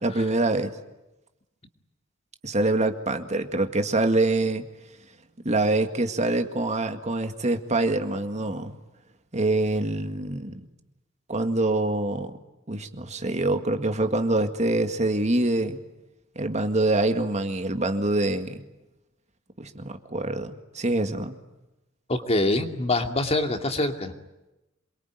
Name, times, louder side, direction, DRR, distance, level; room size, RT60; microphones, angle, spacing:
voice 1, 0.0-0.8 2.4-4.7 5.5-8.7 9.3-10.7 11.3-12.4 12.7-15.8 16.4-18.6 19.6-21.4, right 2 dB, 35° right, 7 dB, 1.9 m, -25 dB
voice 2, 22.1-24.1, left 2 dB, 30° left, 5 dB, 2.5 m, -24 dB
27.5 x 23.0 x 9.4 m, 0.96 s
head